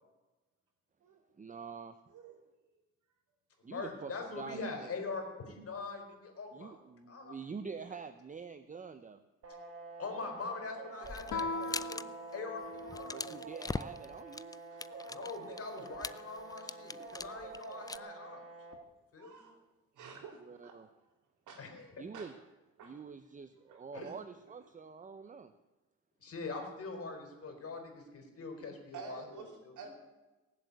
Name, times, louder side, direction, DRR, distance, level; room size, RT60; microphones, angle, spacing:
voice 1, 1.4-2.0 3.6-4.9 6.5-9.2 13.0-14.5 20.3-20.9 22.0-22.3 22.8-25.5, right 5 dB, 25° right, 10 dB, 0.8 m, -46 dB
voice 2, 3.6-6.7 7.1-7.4 10.0-12.0 12.3-13.2 15.1-18.4 19.1-19.5 21.6-22.0 23.9-24.1 26.2-29.9, left 4 dB, 50° left, 4 dB, 4.3 m, -43 dB
sound 1, 9.4-18.8, right 3 dB, 50° right, 2.5 m, -48 dB
sound 2, 11.0-12.0 12.3-12.5 12.8-18.0, left 3 dB, 15° left, 0.4 m, -42 dB
Guitar, 11.3-13.7, left 3 dB, 85° left, 1.1 m, -40 dB
voice 3, 19.2-19.5 19.9-20.8 21.5-21.6 22.1-22.3 22.8-22.9 23.7-24.1 28.9-29.9, right 5 dB, 80° right, 3 dB, 3.6 m, -50 dB
18.5 x 7.8 x 8.3 m, 1.1 s
cardioid pair, 90°, 30 cm